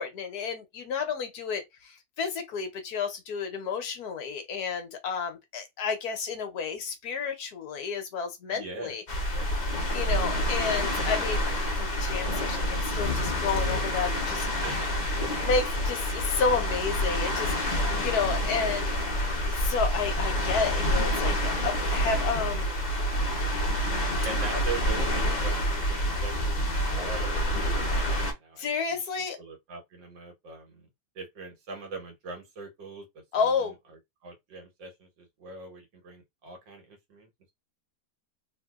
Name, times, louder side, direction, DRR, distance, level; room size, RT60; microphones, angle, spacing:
voice 1, 0.0-9.0 9.9-14.5 15.4-18.9 19.4-22.7 28.6-29.4 33.3-33.7, left 5 dB, 65° left, 1.2 m, -31 dB
voice 2, 8.5-8.9 9.3-9.9 14.6-15.3 18.9-19.2 24.2-29.0 29.4-30.9 31.2-33.1 33.4-33.7 34.2-37.3, right 3 dB, 80° right, 1.9 m, -42 dB
sound 1, 9.1-28.3, equal, 30° left, 0.8 m, -28 dB
3.4 x 2.7 x 2.4 m
omnidirectional pair, 1.9 m